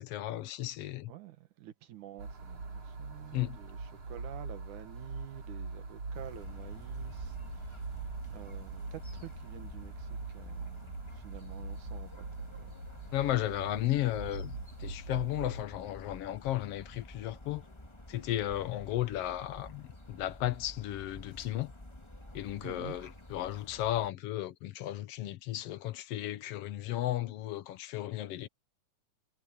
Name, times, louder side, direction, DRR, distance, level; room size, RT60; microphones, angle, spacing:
voice 1, 0.0-1.1 3.3-3.6 13.1-17.6 18.1-21.7 22.3-28.5, left 14 dB, 65° left, 1.6 m, -34 dB
voice 2, 1.1-12.7 22.6-23.0, right 12 dB, 75° right, 2.9 m, -49 dB
sound 1, 2.2-15.6, right 3 dB, 50° right, 4.9 m, -42 dB
sound 2, 6.1-24.1, left 1 dB, 15° left, 1.2 m, -50 dB
omnidirectional pair, 3.6 m